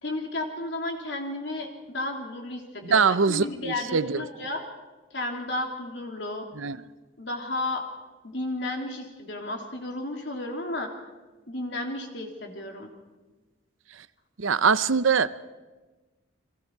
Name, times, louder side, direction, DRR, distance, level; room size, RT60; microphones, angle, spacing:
voice 1, 0.0-4.7 5.1-6.4 7.2-7.8 8.2-10.9 11.5-12.9, left 2 dB, 60° left, 3.2 m, -33 dB
voice 2, 2.9-4.2 6.6-6.8 14.4-15.4, right 5 dB, 85° right, 0.7 m, -23 dB
30.0 x 22.5 x 4.7 m
head